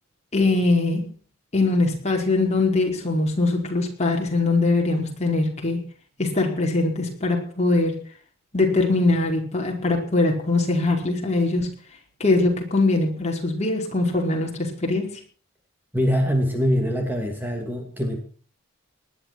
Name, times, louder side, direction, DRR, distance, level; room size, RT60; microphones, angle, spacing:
voice 1, 0.3-1.0 1.5-5.8 6.2-8.0 8.5-11.7 12.2-15.2, left 2 dB, 30° left, 1 dB, 5.0 m, -22 dB
voice 2, 15.9-18.2, equal, 10° right, 4 dB, 2.6 m, -23 dB
19.5 x 11.5 x 6.2 m, 0.43 s
head